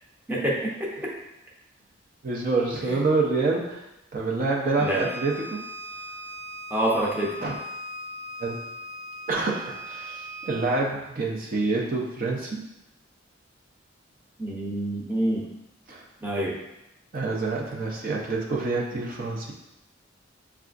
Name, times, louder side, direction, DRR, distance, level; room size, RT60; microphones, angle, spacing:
voice 1, 0.3-1.1 2.9-3.0 4.8-5.0 6.7-7.3 14.4-15.5 16.2-16.6, right 1 dB, 10° right, -5 dB, 0.7 m, -27 dB
voice 2, 2.2-3.8 4.1-5.6 7.4-7.6 8.4-8.6 9.3-12.6 15.9-16.1 17.1-19.5, right 3 dB, 45° right, -2 dB, 0.6 m, -27 dB
Bowed string instrument, 4.7-10.8, equal, 80° right, 0.8 m, -39 dB
6.7 x 2.4 x 2.5 m, 0.92 s
head